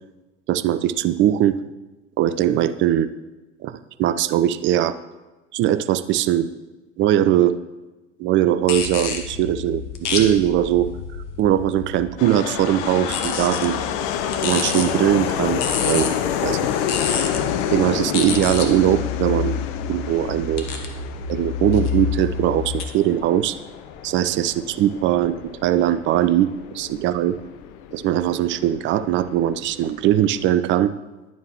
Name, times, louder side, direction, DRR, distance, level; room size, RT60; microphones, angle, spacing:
voice 1, 0.5-1.6 2.2-3.1 3.6-5.0 5.5-6.5 7.0-7.6 8.2-10.9 11.4-13.8 14.4-16.1 16.4-16.6 17.7-19.6 19.9-20.6 21.3-23.6 24.0-27.4 27.9-30.9, right 12 dB, 35° right, 12 dB, 0.4 m, -20 dB
sound 1, 8.6-12.2 13.0-22.8, left 6 dB, 70° left, 1.0 m, -29 dB
sound 2, 12.2-30.5, left 9 dB, 50° left, 0.6 m, -29 dB
10.5 x 7.1 x 3.0 m, 1.1 s
figure-of-eight pair, 65°, 36 cm